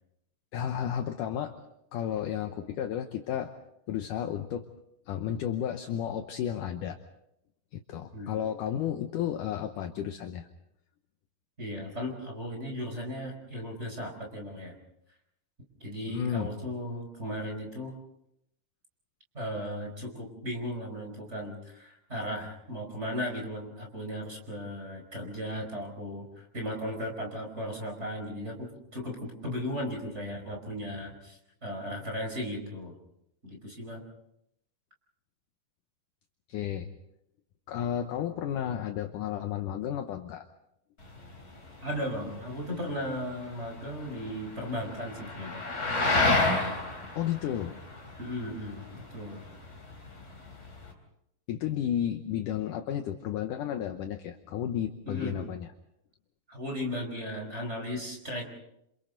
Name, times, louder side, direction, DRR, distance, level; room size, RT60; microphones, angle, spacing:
voice 1, 0.5-1.5 1.9-3.5 3.9-4.7 5.1-7.0 7.7-10.5 16.1-16.5 36.5-36.9 37.7-40.4 47.2-47.7 51.5-55.7, left 10 dB, 70° left, 6 dB, 2.2 m, -32 dB
voice 2, 11.6-14.7 15.8-17.9 19.3-32.9 33.4-34.0 41.8-45.6 47.4-47.5 48.2-49.4 55.0-55.4 56.5-58.4, equal, 15° right, 1 dB, 4.8 m, -36 dB
sound 1, 41.0-50.9, left 2 dB, 20° left, 3.7 m, -32 dB
29.5 x 27.0 x 4.0 m, 0.78 s
omnidirectional pair, 4.5 m